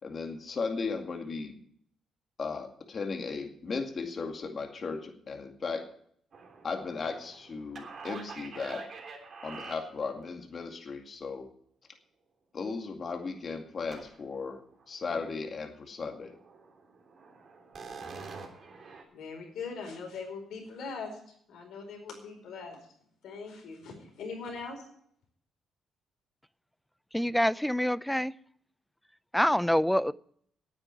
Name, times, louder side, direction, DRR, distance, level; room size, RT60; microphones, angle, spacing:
voice 1, 0.0-1.6 2.4-5.8 6.6-8.8 9.4-11.5 12.5-14.6 14.9-16.4, left 4 dB, 45° left, 4 dB, 2.2 m, -36 dB
sound 1, 6.3-10.2 13.9-14.4 14.7-15.3 15.7-15.8 16.2-19.0, right 4 dB, 50° right, 3.3 m, -46 dB
voice 2, 19.1-21.2 21.5-22.8 23.2-24.8, left 4 dB, 75° left, 2 dB, 4.7 m, -41 dB
voice 3, 27.1-28.3 29.3-30.1, equal, 5° left, 19 dB, 0.4 m, -26 dB
9.7 x 9.1 x 9.0 m, 0.64 s
cardioid pair, 90°, 0 cm